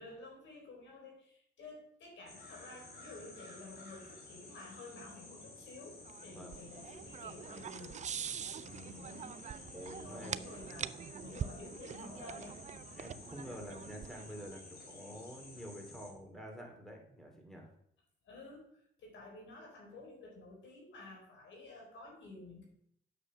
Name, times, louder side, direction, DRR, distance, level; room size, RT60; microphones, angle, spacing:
voice 1, 0.0-8.1 9.0-9.4 10.0-11.0 11.2-12.6 18.2-22.6, left 2 dB, 75° left, 0 dB, 4.4 m, -51 dB
sound 1, 2.3-16.1, left 3 dB, 50° left, 3.5 m, -53 dB
sound 2, 6.1-14.6, right 8 dB, 35° right, 0.4 m, -45 dB
voice 2, 6.3-6.7 8.6-9.1 9.7-10.4 12.9-17.7, equal, ahead, 1 dB, 2.6 m, -48 dB
9.0 x 6.5 x 6.0 m, 0.68 s
cardioid pair, 90°, 20 cm